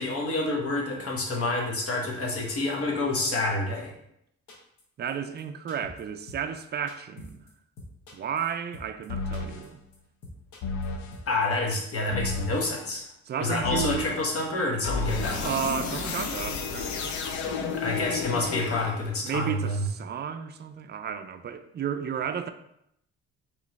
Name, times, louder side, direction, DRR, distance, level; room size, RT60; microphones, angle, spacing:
voice 1, 0.0-3.9 11.3-13.1 13.4-15.5 17.6-19.9, left 2 dB, 50° left, 0 dB, 0.9 m, -28 dB
sound 1, 4.5-4.8 5.1-5.2 5.4-5.5 5.7-6.0 6.3-6.6 6.9-7.5 7.8-9.1 9.3-9.7 9.9-10.0 10.2-10.9 11.1-11.5 11.7-11.8, left 2 dB, 85° left, 1.0 m, -45 dB
voice 2, 5.0-7.4 8.1-9.8 13.3-14.2 15.4-17.7 19.2-22.5, right 8 dB, 35° right, 9 dB, 0.4 m, -33 dB
sound 2, 9.1-9.7 10.6-11.2 12.1-12.7 13.6-14.2 14.8-19.2, left 4 dB, 70° left, 0.6 m, -32 dB
3.1 x 3.0 x 4.0 m, 0.77 s
cardioid pair, 90°, 30 cm